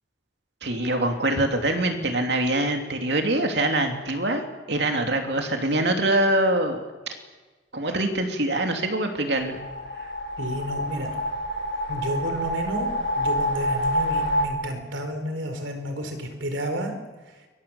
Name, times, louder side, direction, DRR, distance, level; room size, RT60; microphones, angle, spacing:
voice 1, 0.6-4.4 4.7-6.8 7.7-9.6, right 1 dB, 60° right, 4 dB, 3.0 m, -24 dB
sound 1, 9.3-14.4, equal, 65° left, 6.8 m, -27 dB
voice 2, 10.4-11.1 11.9-12.9 13.2-16.9, equal, 85° right, 6 dB, 4.5 m, -31 dB
26.0 x 22.5 x 7.2 m, 1.3 s
head